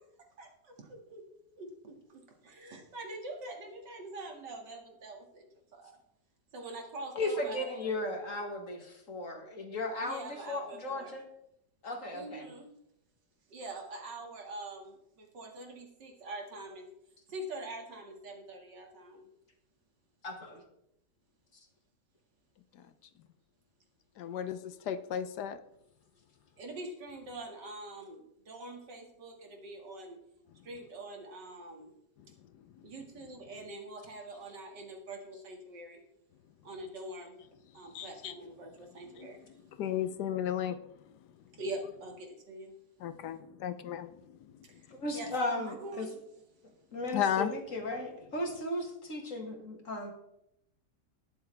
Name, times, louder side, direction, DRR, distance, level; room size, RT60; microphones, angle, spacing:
voice 1, 0.4-1.2 1.6-5.9 6.5-7.9 10.0-11.1 12.1-12.7 13.5-16.9 17.3-19.2 24.6-24.7 26.6-30.2 30.6-31.9 32.8-36.0 36.6-37.4 37.7-39.4 41.5-42.7 44.7-44.8 45.1-46.1, right 2 dB, 85° right, 2 dB, 2.6 m, -44 dB
voice 2, 7.1-11.2 11.8-12.5 20.2-20.6 44.9-46.1 46.9-50.1, left 1 dB, 50° left, 2 dB, 2.3 m, -36 dB
voice 3, 24.2-25.6 37.9-38.3 39.2-39.3 39.8-40.8 43.0-44.1 47.1-47.5, left 9 dB, 75° left, 12 dB, 1.3 m, -33 dB
20.5 x 7.0 x 3.3 m, 0.81 s
omnidirectional pair, 1.8 m